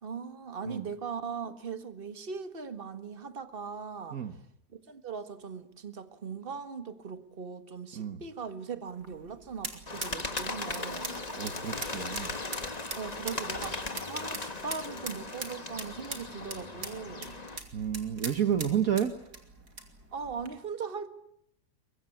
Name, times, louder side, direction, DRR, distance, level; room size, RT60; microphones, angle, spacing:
voice 1, 0.0-4.2 4.7-11.2 13.0-17.4 20.1-21.1, right 6 dB, 35° right, 10 dB, 1.8 m, -39 dB
sound 1, 8.9-20.5, right 4 dB, 80° right, 3.4 m, -43 dB
Bird, 9.9-17.6, left 3 dB, 25° left, 1.6 m, -38 dB
voice 2, 11.3-12.4 17.7-19.1, right 9 dB, 60° right, 10 dB, 1.6 m, -30 dB
23.0 x 22.5 x 8.6 m, 0.73 s
omnidirectional pair, 1.7 m